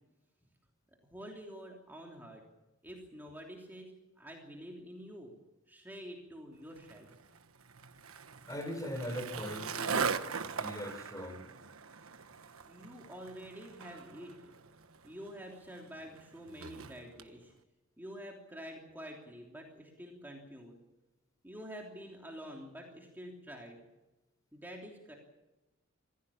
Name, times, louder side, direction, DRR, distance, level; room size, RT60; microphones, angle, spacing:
voice 1, 1.1-2.4 2.8-5.3 5.7-7.1 12.7-14.5 15.0-17.5 18.0-20.8 21.4-23.8 24.5-25.2, equal, 10° right, -1 dB, 3.2 m, -48 dB
Skateboard, 6.8-17.3, right 5 dB, 80° right, 1.3 m, -40 dB
voice 2, 8.5-11.4, equal, 15° left, 8 dB, 4.3 m, -40 dB
26.5 x 16.0 x 7.2 m, 1.0 s
head